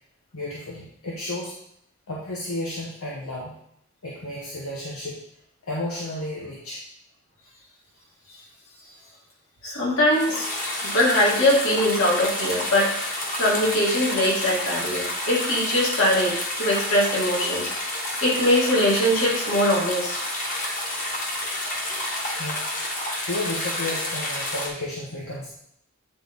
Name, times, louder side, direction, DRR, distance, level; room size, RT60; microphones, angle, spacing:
voice 1, 0.3-1.5 2.1-3.6 4.0-5.2 5.6-6.8 10.3-10.4 22.3-22.7 23.2-25.6, left 1 dB, 85° left, -5 dB, 1.1 m, -32 dB
voice 2, 9.6-10.5 10.8-12.9 13.4-17.7 18.2-20.2, left 1 dB, 65° left, -5 dB, 2.2 m, -22 dB
sound 1, 10.1-24.7, left 1 dB, 40° left, 1.3 m, -29 dB
8.6 x 3.8 x 3.6 m, 0.73 s
head